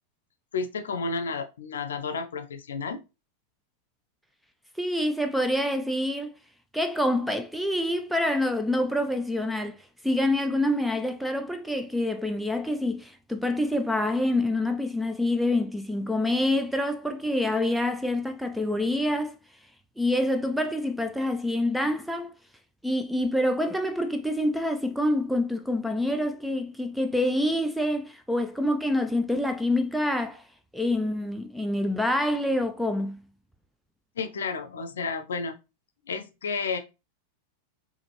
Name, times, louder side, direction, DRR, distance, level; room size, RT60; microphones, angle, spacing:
voice 1, 0.5-3.0 34.2-35.6 36.1-36.8, left 4 dB, 65° left, 0.6 m, -31 dB
voice 2, 4.8-6.3 6.7-9.8 10.0-19.3 20.0-22.3 22.8-30.4 30.7-33.2, left 1 dB, ahead, 0.4 m, -26 dB
5.0 x 2.8 x 3.0 m
figure-of-eight pair, 90°, 0 cm